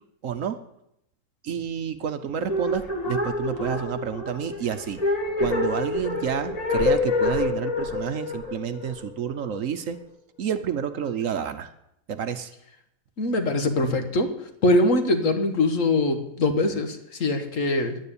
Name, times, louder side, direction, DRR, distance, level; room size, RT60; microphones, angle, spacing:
voice 1, 0.2-0.6 1.4-5.0 5.4-10.0 10.4-11.7 12.1-12.5, right 8 dB, 60° right, 10 dB, 1.1 m, -29 dB
sound 1, 2.4-9.6, left 3 dB, 25° left, 1.9 m, -27 dB
voice 2, 13.2-14.3 14.6-18.0, left 2 dB, 55° left, 7 dB, 1.7 m, -22 dB
10.5 x 9.5 x 8.5 m, 0.80 s
omnidirectional pair, 1.6 m